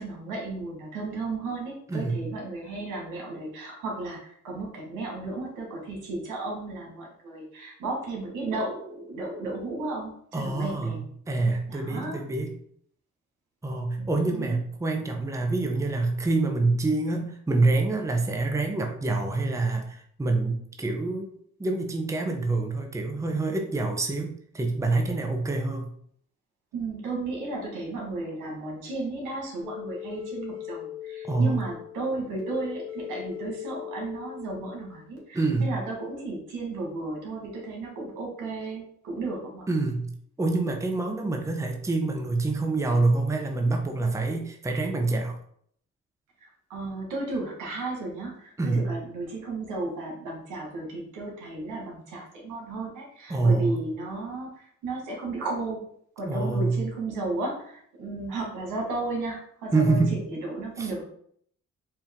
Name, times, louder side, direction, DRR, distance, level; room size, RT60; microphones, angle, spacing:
voice 1, 0.0-11.1 11.7-12.2 14.0-14.6 26.7-39.6 46.4-55.8 56.2-61.0, right 2 dB, 90° right, -1 dB, 1.5 m, -34 dB
voice 2, 1.9-2.2 10.3-12.5 13.6-21.3 21.6-25.9 31.2-31.6 35.3-35.7 39.7-40.1 40.4-45.4 48.6-48.9 53.3-53.8 56.3-56.8 59.7-60.2 60.8-60.9, right 3 dB, 10° right, 4 dB, 0.6 m, -26 dB
sound 1, 29.6-35.2, left 11 dB, 50° right, 1.3 m, -40 dB
4.5 x 2.5 x 3.6 m, 0.64 s
cardioid pair, 90°, 30 cm